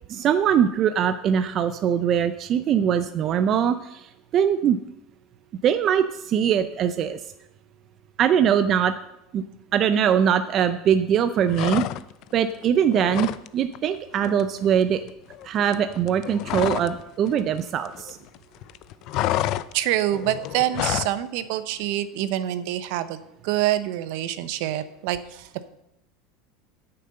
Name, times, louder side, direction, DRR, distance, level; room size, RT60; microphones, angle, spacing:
voice 1, 0.1-4.1 4.3-4.8 5.6-7.2 8.2-8.9 9.3-9.4 9.7-11.8 12.3-15.0 15.4-18.2, right 8 dB, 30° right, 10 dB, 0.5 m, -22 dB
sound 1, 11.5-12.3 12.6-13.5 13.7-14.0 14.2-17.0 17.3-18.4 18.6-21.2, left 14 dB, 45° left, 0.4 m, -29 dB
voice 2, 19.7-25.7, right 13 dB, 60° right, 13 dB, 0.8 m, -26 dB
9.3 x 6.7 x 7.7 m, 0.82 s
cardioid pair, 170°, 0 cm